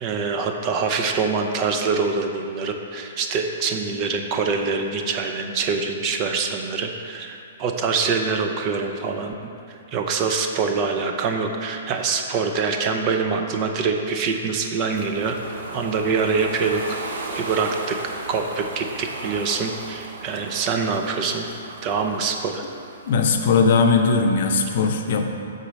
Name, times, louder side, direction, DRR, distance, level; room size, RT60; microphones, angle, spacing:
voice 1, 0.0-9.3 9.7-16.8 17.4-18.0 18.3-21.5 21.8-22.6, right 5 dB, 30° right, 4 dB, 0.6 m, -25 dB
Ocean, 14.9-23.8, right 2 dB, 70° right, 1.0 m, -36 dB
voice 2, 23.1-25.3, left 4 dB, 55° left, 4 dB, 0.7 m, -19 dB
6.5 x 4.1 x 6.2 m, 2.6 s
hypercardioid pair, 155°, 0 cm